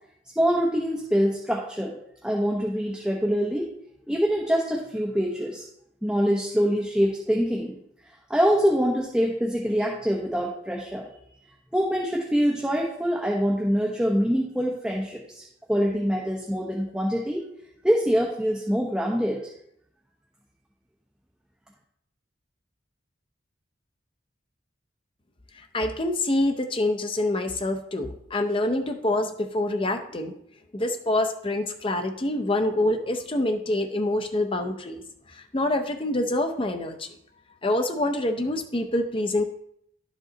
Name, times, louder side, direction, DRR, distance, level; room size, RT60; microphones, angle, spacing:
voice 1, 0.4-2.0 2.2-3.7 4.1-5.6 6.0-7.7 8.3-11.0 11.7-15.4 15.7-17.4 17.8-19.4, equal, 5° right, -2 dB, 0.9 m, -24 dB
voice 2, 25.5-30.3 30.7-35.0 35.3-37.1 37.6-39.4, left 1 dB, 25° left, 5 dB, 0.5 m, -26 dB
11.5 x 5.1 x 3.9 m, 0.74 s
head